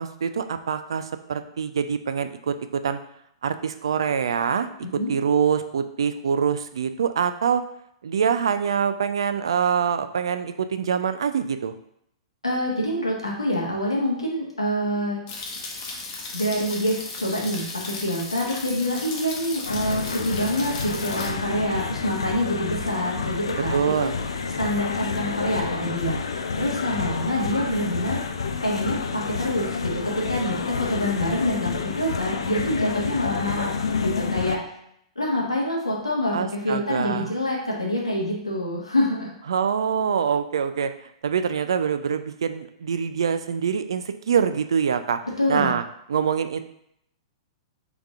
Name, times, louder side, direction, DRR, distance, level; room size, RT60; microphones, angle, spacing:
voice 1, 0.0-3.0 3.4-4.7 4.9-7.6 8.0-11.8 23.5-24.2 36.3-37.3 39.5-40.9 41.2-45.2 45.5-45.8 46.1-46.6, right 7 dB, 65° right, 10 dB, 0.4 m, -24 dB
voice 2, 12.4-15.2 16.3-24.1 24.6-26.2 26.6-28.2 28.6-34.6 35.1-39.3 45.4-45.7, left 1 dB, 85° left, -2 dB, 1.3 m, -26 dB
sound 1, 15.3-21.3, left 3 dB, 35° left, 0.9 m, -36 dB
sound 2, 19.6-34.6, left 5 dB, 65° left, 0.4 m, -29 dB
4.0 x 3.5 x 3.5 m, 0.73 s
figure-of-eight pair, 105°, 3 cm